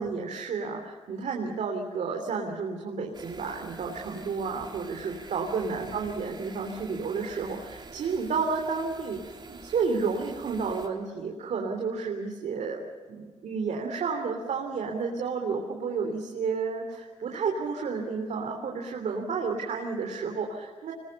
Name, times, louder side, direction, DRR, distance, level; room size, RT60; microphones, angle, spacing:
voice 1, 0.0-20.9, right 5 dB, 75° right, 2 dB, 3.3 m, -31 dB
sound 1, 3.1-10.9, right 3 dB, 35° right, 3.8 m, -46 dB
25.0 x 21.0 x 6.9 m, 1.5 s
cardioid pair, 95°, 12 cm